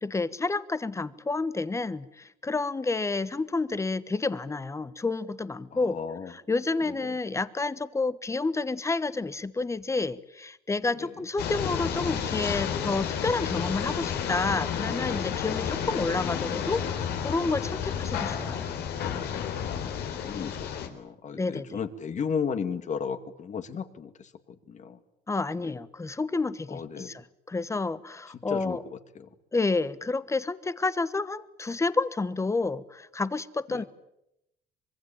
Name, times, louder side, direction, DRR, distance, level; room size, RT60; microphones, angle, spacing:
voice 1, 0.0-6.0 6.3-18.7 21.3-21.8 25.3-28.8 29.5-33.9, left 3 dB, 15° left, 15 dB, 1.2 m, -30 dB
voice 2, 5.7-6.3 6.9-7.2 11.0-11.1 15.5-15.7 19.6-25.0 25.6-25.7 26.7-27.1 28.3-29.3 33.7-33.9, left 6 dB, 45° left, 9 dB, 2.2 m, -35 dB
sound 1, 11.4-20.9, left 8 dB, 75° left, 3.7 m, -31 dB
25.5 x 22.0 x 9.0 m, 0.84 s
cardioid pair, 110°, 17 cm